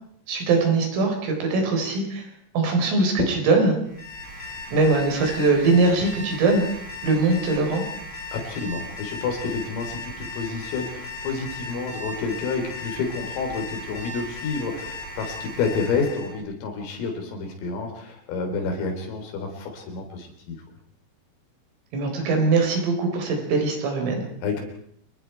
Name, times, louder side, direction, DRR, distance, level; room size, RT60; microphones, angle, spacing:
voice 1, 0.3-2.3 2.5-3.8 4.7-6.6 7.0-7.8 21.9-24.3, right 3 dB, 80° right, 3 dB, 6.8 m, -21 dB
Alarm, 3.8-16.3, left 2 dB, 20° left, 8.4 m, -37 dB
voice 2, 8.3-20.6 24.4-24.6, left 4 dB, 80° left, 3 dB, 6.2 m, -29 dB
27.0 x 22.5 x 4.6 m, 0.68 s
omnidirectional pair, 5.8 m